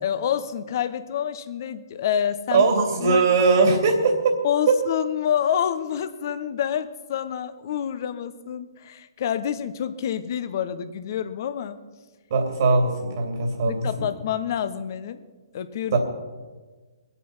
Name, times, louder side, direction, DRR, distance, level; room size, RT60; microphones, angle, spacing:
voice 1, 0.0-2.6 3.0-3.2 3.6-3.7 4.4-11.8 13.6-15.2 15.5-16.0, left 9 dB, 50° left, 11 dB, 1.0 m, -27 dB
voice 2, 2.5-4.4 4.7-4.8 12.3-14.1 15.9-16.0, right 4 dB, 55° right, 2 dB, 2.9 m, -20 dB
23.0 x 8.4 x 5.6 m, 1.3 s
figure-of-eight pair, 130°, 2 cm